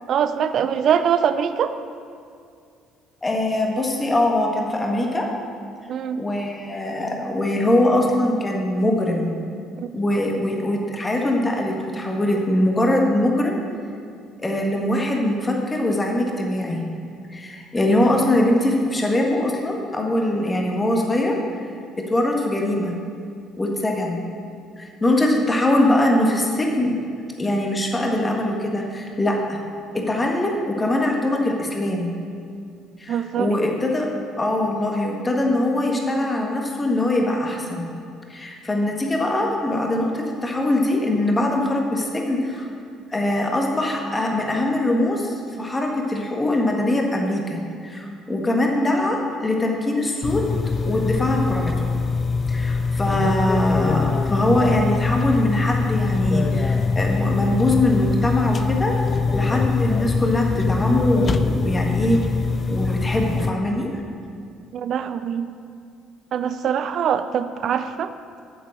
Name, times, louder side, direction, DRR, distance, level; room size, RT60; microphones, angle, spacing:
voice 1, 0.1-1.7 5.9-6.2 9.8-9.9 33.1-33.6 64.7-65.5 66.3-68.1, right 8 dB, 55° right, 11 dB, 0.5 m, -23 dB
voice 2, 3.2-5.3 6.1-9.3 9.9-13.6 14.4-16.8 17.3-21.4 22.1-22.9 23.6-24.2 24.8-26.9 27.4-29.6 29.9-32.1 33.0-34.1 34.4-37.9 38.3-42.7 43.1-50.4 50.9-51.9 52.5-59.0 59.3-62.2 62.7-63.9, left 1 dB, 20° left, 0 dB, 1.6 m, -22 dB
sound 1, 50.2-63.5, left 4 dB, 35° left, 0.4 m, -23 dB
8.3 x 7.4 x 6.5 m, 2.3 s
hypercardioid pair, 50°, 0 cm